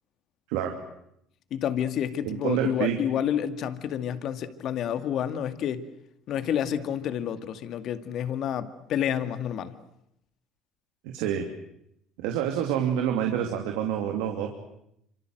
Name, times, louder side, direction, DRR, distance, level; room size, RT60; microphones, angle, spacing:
voice 1, 0.5-0.8 2.2-3.0 11.0-11.5 12.2-14.6, right 9 dB, 90° right, 4 dB, 2.8 m, -27 dB
voice 2, 1.5-5.9 6.3-9.7, left 9 dB, 60° left, 10 dB, 2.1 m, -29 dB
27.0 x 25.5 x 7.9 m, 0.76 s
supercardioid pair, 100°, 0 cm